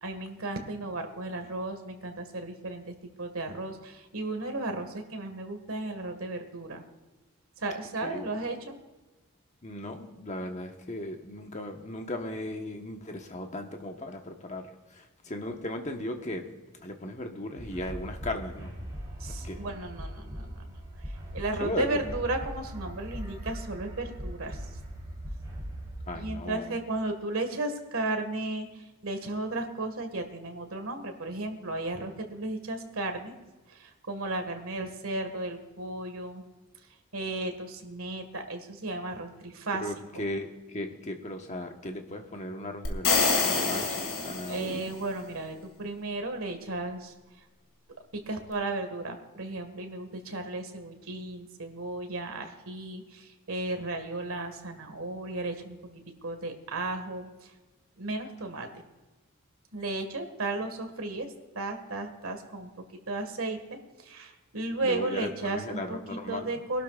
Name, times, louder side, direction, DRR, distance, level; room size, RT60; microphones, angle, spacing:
voice 1, 0.0-6.8 7.6-8.8 19.2-20.8 21.0-24.8 26.1-33.3 33.7-36.4 37.1-39.9 40.1-40.2 44.5-47.1 48.1-57.5 58.0-58.7 59.7-62.7 63.1-66.8, right 2 dB, 70° right, 5 dB, 1.8 m, -34 dB
voice 2, 8.0-8.3 9.6-16.5 16.8-18.7 19.2-19.6 21.6-22.0 26.1-26.8 39.8-44.9 64.8-66.5, left 1 dB, 30° left, 4 dB, 1.2 m, -37 dB
sound 1, 17.6-26.3, equal, 20° right, 3.3 m, -40 dB
sound 2, 42.8-44.9, left 4 dB, 60° left, 2.4 m, -26 dB
24.0 x 12.0 x 2.5 m, 1.2 s
head